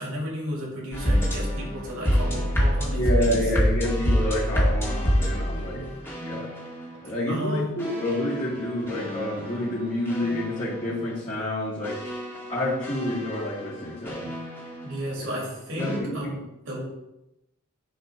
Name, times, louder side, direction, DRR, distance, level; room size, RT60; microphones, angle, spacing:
voice 1, 0.0-3.4 5.6-6.1 7.3-7.8 14.8-16.8, equal, 75° right, -2 dB, 2.7 m, -33 dB
sound 1, 0.9-6.9 7.8-11.0 11.8-14.9 15.8-16.0, equal, 10° left, 2.0 m, -27 dB
voice 2, 2.9-5.8 6.2-6.5 7.0-12.0 12.5-14.3 15.8-16.4, left 1 dB, 30° left, -11 dB, 2.5 m, -28 dB
10.5 x 3.6 x 3.7 m, 0.90 s
head